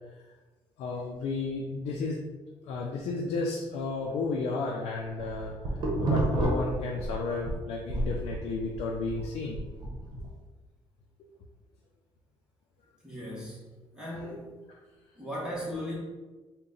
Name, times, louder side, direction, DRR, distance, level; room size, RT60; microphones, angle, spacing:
voice 1, 0.8-2.2 2.6-9.6 14.2-14.4, left 3 dB, 90° left, -2 dB, 0.4 m, -33 dB
sound 1, 5.0-7.6 7.9-10.3, right 2 dB, 50° right, 1.0 m, -30 dB
voice 2, 13.0-13.6 13.9-14.5 15.2-15.9, equal, 5° right, -7 dB, 1.2 m, -37 dB
3.9 x 2.2 x 3.8 m, 1.2 s
cardioid pair, 125°, 10 cm